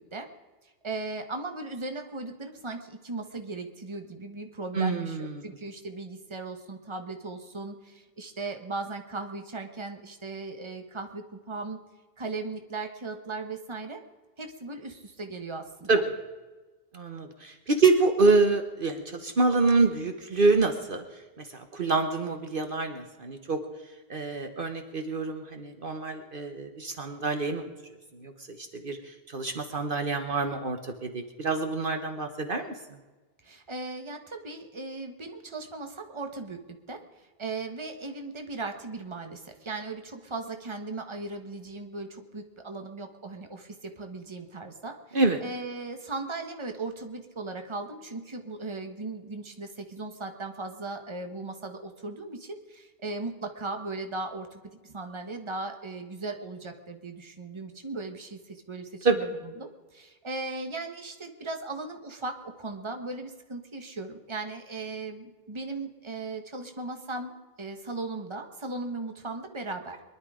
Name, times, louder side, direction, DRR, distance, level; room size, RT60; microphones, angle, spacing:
voice 1, 0.8-11.8 12.2-14.0 14.4-16.0 33.4-59.3 59.6-67.3 67.6-70.0, right 3 dB, 30° right, 5 dB, 1.4 m, -37 dB
voice 2, 4.7-5.4 15.9-16.0 16.9-21.0 21.4-23.6 24.1-27.7 28.1-32.7 45.1-45.4 59.0-59.2, right 3 dB, 60° right, 7 dB, 1.3 m, -26 dB
22.5 x 11.5 x 5.0 m, 1.2 s
omnidirectional pair, 1.0 m